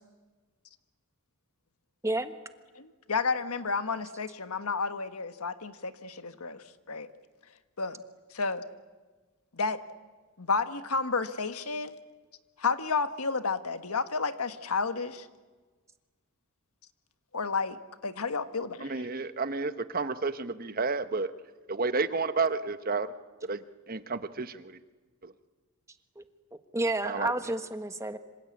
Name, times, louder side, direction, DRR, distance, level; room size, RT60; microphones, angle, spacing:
voice 1, 2.0-2.4 26.2-26.3 26.7-28.2, right 2 dB, 15° right, 9 dB, 1.4 m, -30 dB
voice 2, 2.7-7.1 7.8-8.0 8.3-8.6 9.5-9.8 10.4-11.9 12.6-15.3 17.3-19.1, left 4 dB, 85° left, 10 dB, 1.5 m, -31 dB
voice 3, 18.8-21.3 21.7-23.1 23.4-24.7 25.2-25.3 27.0-27.3, right 4 dB, 40° right, 12 dB, 1.0 m, -31 dB
26.5 x 26.0 x 8.6 m, 1.4 s
head